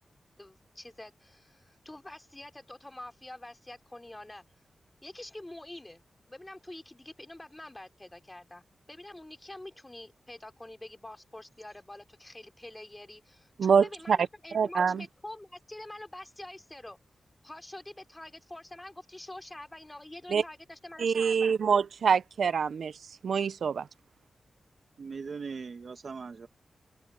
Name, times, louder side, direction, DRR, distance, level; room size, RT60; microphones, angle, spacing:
voice 1, 0.4-4.5 5.0-17.0 17.4-21.6, left 1 dB, 15° left, 3.7 m, -46 dB
voice 2, 13.6-14.2 14.5-15.0 20.3-20.4 21.0-22.9 23.2-23.9, right 6 dB, 85° right, 0.6 m, -25 dB
voice 3, 25.0-26.5, right 5 dB, 65° right, 1.4 m, -39 dB
open air
cardioid pair, 75°, 0 cm